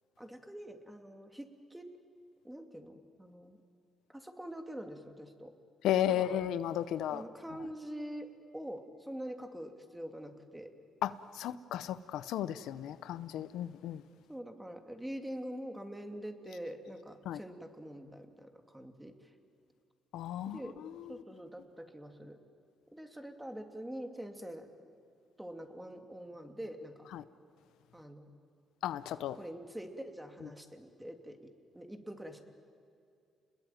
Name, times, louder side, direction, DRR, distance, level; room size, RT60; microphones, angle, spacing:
voice 1, 0.2-1.9 2.4-3.6 4.1-5.5 6.0-6.4 7.1-10.7 14.3-19.3 20.5-20.8 21.1-22.4 22.9-24.7 25.4-27.1 27.9-28.3 29.3-31.5 31.7-32.4, equal, 5° right, 5 dB, 2.7 m, -45 dB
voice 2, 5.8-7.2 11.0-14.0 17.3-17.4 20.1-20.6 27.1-27.2 28.8-29.4, left 11 dB, 85° left, 13 dB, 0.8 m, -34 dB
30.0 x 21.0 x 9.3 m, 2.4 s
cardioid pair, 90°, 0 cm